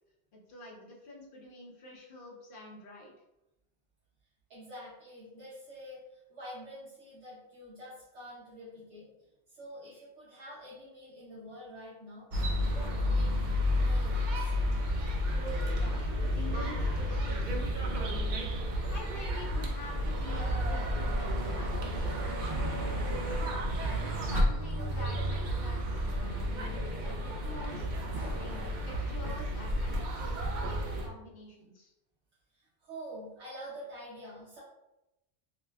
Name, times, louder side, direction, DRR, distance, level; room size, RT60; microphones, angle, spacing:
voice 1, 0.3-3.1 15.3-18.5 18.9-23.4 24.3-27.9 28.3-31.9, left 1 dB, 55° left, -3 dB, 1.0 m, -47 dB
voice 2, 4.5-12.3 12.7-14.5 28.1-28.7 32.5-34.6, equal, 75° right, -8 dB, 1.2 m, -47 dB
sound 1, 12.3-31.1, equal, 55° right, 0.6 m, -31 dB
4.9 x 2.2 x 2.2 m, 0.92 s
omnidirectional pair, 1.2 m